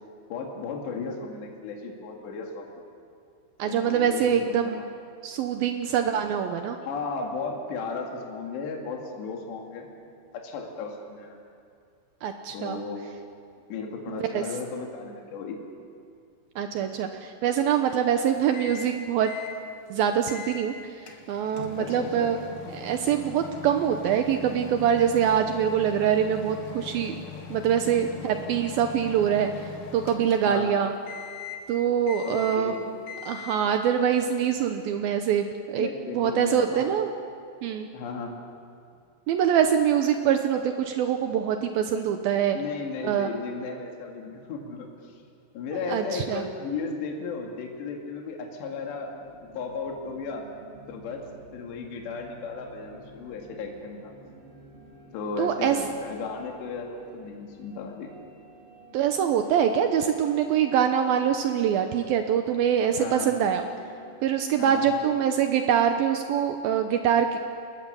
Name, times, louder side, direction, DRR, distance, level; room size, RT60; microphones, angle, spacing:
voice 1, 0.3-2.8 3.6-4.9 6.8-9.9 10.3-11.4 12.5-13.1 13.7-15.6 21.8-22.3 27.8-27.9 30.5-30.8 32.2-32.9 35.8-36.9 37.9-38.4 42.5-45.2 45.5-49.1 49.5-50.5 50.9-51.2 51.5-54.1 55.1-58.1 63.0-63.3 64.6-64.9, left 4 dB, 65° left, 1 dB, 4.3 m, -35 dB
voice 2, 3.6-4.8 5.2-6.8 12.2-12.8 14.1-14.4 16.6-19.3 19.9-22.4 22.7-27.2 27.5-30.9 31.7-32.7 33.3-35.9 36.1-37.1 37.6-37.9 39.3-42.6 43.0-43.3 45.9-46.5 55.4-55.8 58.9-63.6 64.2-67.4, right 8 dB, 85° right, 6 dB, 2.1 m, -24 dB
Microwave oven, 18.5-18.9 19.2-19.6 20.3-20.6 21.1-30.7 31.1-31.7 32.1-32.7 33.1-33.7, left 7 dB, 85° left, 4.4 m, -41 dB
sound 1, 49.0-64.1, equal, 55° right, 9.6 m, -51 dB
29.5 x 21.0 x 7.0 m, 2.4 s
omnidirectional pair, 5.6 m